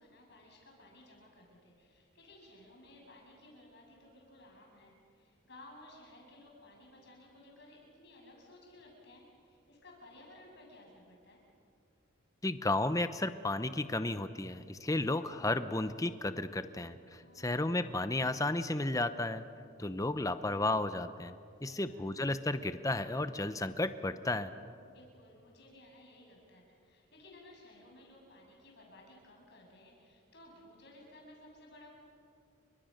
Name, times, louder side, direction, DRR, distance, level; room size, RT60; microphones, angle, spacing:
voice 1, 0.0-11.4 17.1-17.6 21.6-22.1 24.9-31.9, left 1 dB, 50° left, -1 dB, 7.4 m, -57 dB
voice 2, 12.4-19.4 19.8-21.3 21.6-24.5, left 2 dB, 15° left, 11 dB, 0.7 m, -33 dB
29.5 x 24.5 x 6.6 m, 2.4 s
head